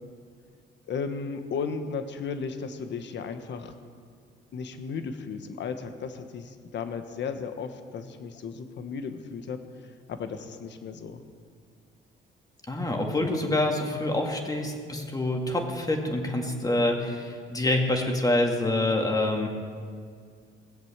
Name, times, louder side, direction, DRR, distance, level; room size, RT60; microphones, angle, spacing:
voice 1, 0.9-3.7 4.5-9.6 10.1-11.2, left 5 dB, 65° left, 8 dB, 1.3 m, -35 dB
voice 2, 12.7-19.5, left 2 dB, 20° left, 2 dB, 2.2 m, -26 dB
18.0 x 7.8 x 7.3 m, 2.1 s
cardioid pair, 90°, 20 cm